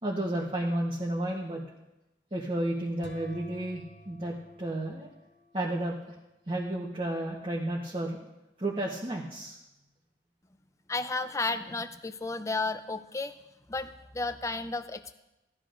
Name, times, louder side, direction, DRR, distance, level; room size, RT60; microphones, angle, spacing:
voice 1, 0.0-1.6 2.3-5.1 5.5-5.9 6.5-8.2 8.6-9.6, right 1 dB, 30° right, -3 dB, 1.0 m, -32 dB
sound 1, 3.0-5.8, left 1 dB, 75° left, 1.7 m, -50 dB
voice 2, 10.9-13.3 13.7-15.1, left 3 dB, 15° left, 10 dB, 0.4 m, -33 dB
16.0 x 12.5 x 2.6 m, 0.94 s
head